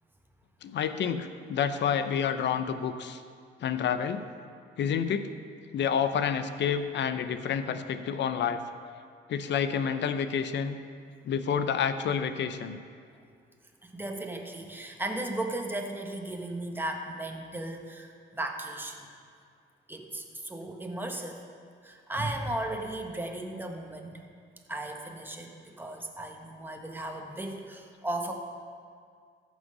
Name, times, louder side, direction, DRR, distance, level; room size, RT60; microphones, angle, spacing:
voice 1, 0.6-3.2 3.6-4.2 4.8-5.3 5.7-8.6 9.3-10.8 11.2-12.8, left 7 dB, 65° left, 10 dB, 0.7 m, -29 dB
voice 2, 13.8-19.1 19.9-21.4 21.8-24.2 24.7-28.3, right 1 dB, 10° right, 2 dB, 1.3 m, -36 dB
14.0 x 6.3 x 5.5 m, 2.2 s
cardioid pair, 90°, 20 cm